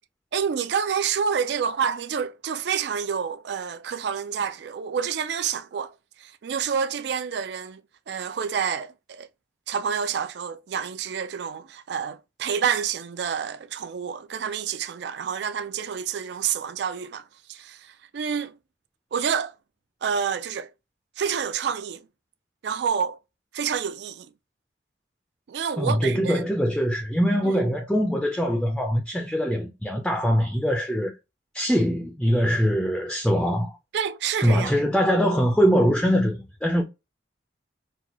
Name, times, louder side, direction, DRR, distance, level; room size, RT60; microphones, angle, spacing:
voice 1, 0.3-5.9 6.2-7.8 8.1-9.3 9.7-18.6 19.1-19.5 20.0-20.7 21.2-22.1 22.6-23.2 23.5-24.3 25.5-26.4 27.4-27.6 33.9-34.7, right 7 dB, 65° right, 0.4 m, -28 dB
voice 2, 25.8-31.1 31.5-33.8 34.4-36.8, equal, 5° left, 0.4 m, -22 dB
4.1 x 2.2 x 2.9 m
head